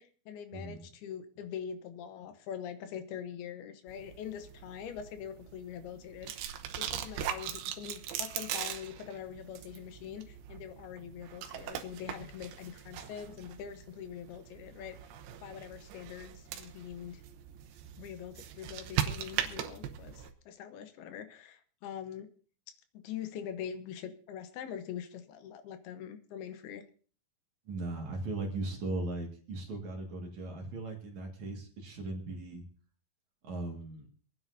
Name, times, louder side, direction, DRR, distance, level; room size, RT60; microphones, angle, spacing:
voice 1, 0.0-6.3 6.8-15.0 15.4-17.2 18.0-22.3 23.0-26.8, left 9 dB, 85° left, 9 dB, 3.0 m, -43 dB
sound 1, 3.9-20.3, right 10 dB, 85° right, 2.8 m, -40 dB
voice 2, 27.7-32.6 33.4-34.1, right 2 dB, 55° right, 1 dB, 2.9 m, -38 dB
26.5 x 9.5 x 2.7 m, 0.41 s
omnidirectional pair, 4.4 m